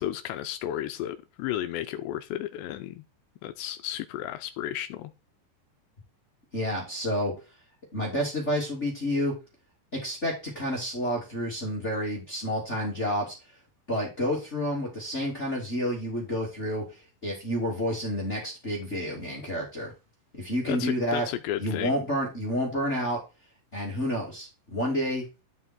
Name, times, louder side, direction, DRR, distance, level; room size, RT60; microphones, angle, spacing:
voice 1, 0.0-3.0 3.4-5.1 20.7-21.9, left 12 dB, 85° left, 9 dB, 2.6 m, -33 dB
voice 2, 6.5-7.3 7.9-9.3 9.9-13.3 13.9-19.9 20.3-21.3 21.6-23.2 23.7-25.2, equal, 20° left, -2 dB, 2.1 m, -29 dB
12.0 x 5.6 x 4.5 m, 0.29 s
omnidirectional pair, 5.6 m